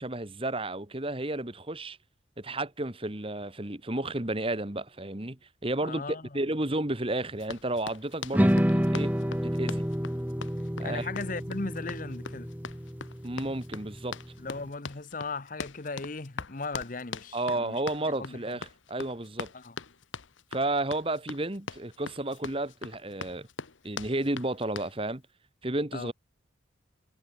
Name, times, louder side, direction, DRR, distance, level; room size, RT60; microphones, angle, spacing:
voice 1, 0.0-2.0 2.4-9.1 9.4-9.8 10.8-11.1 13.2-14.2 17.3-19.5 20.5-23.5 23.8-25.2 25.6-26.1, right 2 dB, 30° right, 1.7 m, -32 dB
voice 2, 5.8-6.4 10.8-12.5 14.4-18.6 19.5-19.8 25.9-26.1, left 3 dB, 45° left, 1.0 m, -37 dB
Run, 7.4-25.0, left 4 dB, 85° left, 1.3 m, -42 dB
sound 1, 8.3-14.6, equal, 10° right, 1.4 m, -29 dB
head